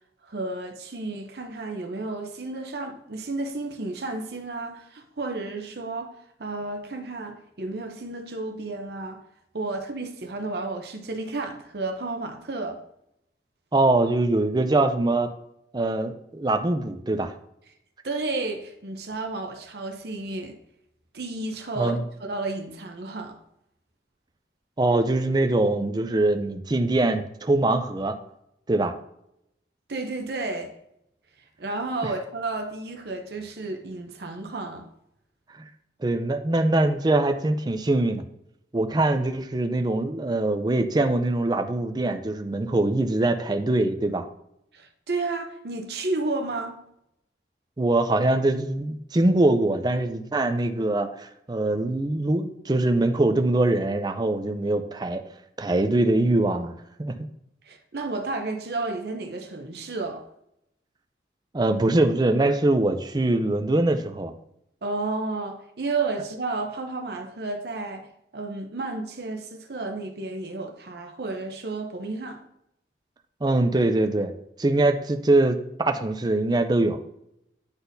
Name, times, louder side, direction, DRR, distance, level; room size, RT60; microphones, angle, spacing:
voice 1, 0.2-6.1 6.4-9.2 9.5-12.8 18.0-20.6 21.1-21.9 22.2-23.4 29.9-30.7 31.6-34.9 44.7-46.8 57.7-60.2 64.8-72.4, right 3 dB, 65° right, 0.7 m, -32 dB
voice 2, 13.7-15.3 15.7-17.3 21.8-22.0 24.8-28.1 28.7-28.9 36.0-38.2 38.7-44.3 47.8-55.2 55.6-56.7 57.0-57.1 61.5-64.3 73.4-74.3 74.6-77.0, right 2 dB, 25° right, 0.4 m, -23 dB
9.6 x 4.1 x 2.7 m
head